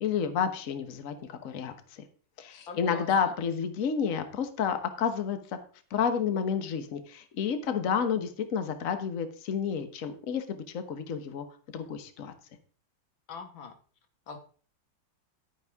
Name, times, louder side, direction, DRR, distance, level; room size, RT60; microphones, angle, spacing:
voice 1, 0.0-2.0 2.4-5.4 5.9-11.4 11.7-12.3, left 7 dB, 50° left, 9 dB, 1.4 m, -30 dB
voice 2, 2.5-3.3 13.3-13.8 14.3-14.4, left 5 dB, 90° left, 6 dB, 2.2 m, -42 dB
11.0 x 9.6 x 3.6 m, 0.42 s
omnidirectional pair, 2.1 m